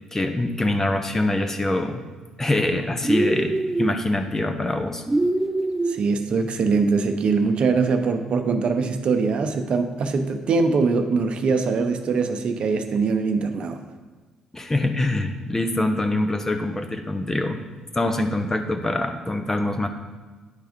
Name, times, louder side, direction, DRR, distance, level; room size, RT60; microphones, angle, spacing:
voice 1, 0.1-2.0 2.4-5.0 14.5-17.6 17.9-19.9, left 2 dB, 20° left, 6 dB, 0.8 m, -24 dB
sound 1, 3.0-3.9 5.1-6.0, right 2 dB, 15° right, 0.5 m, -23 dB
voice 2, 5.9-13.8, right 4 dB, 55° right, 7 dB, 0.7 m, -22 dB
9.8 x 3.5 x 5.1 m, 1.3 s
supercardioid pair, 75°, 2 cm